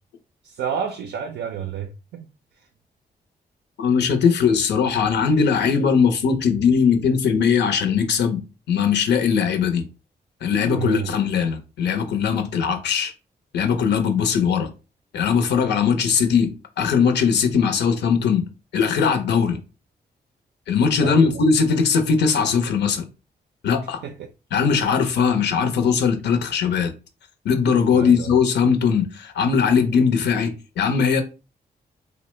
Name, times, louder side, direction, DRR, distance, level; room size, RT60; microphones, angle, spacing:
voice 1, 0.4-2.3 10.5-11.1 21.0-21.3 24.0-24.3 27.9-28.3, right 7 dB, 85° right, 0.4 m, -30 dB
voice 2, 3.8-8.4 8.7-9.8 10.4-13.1 13.5-14.7 15.1-18.5 18.7-19.6 20.7-23.1 23.6-24.0 24.5-26.9 27.4-31.2, left 6 dB, 80° left, 0.6 m, -20 dB
2.9 x 2.0 x 3.1 m
cardioid pair, 65°, 17 cm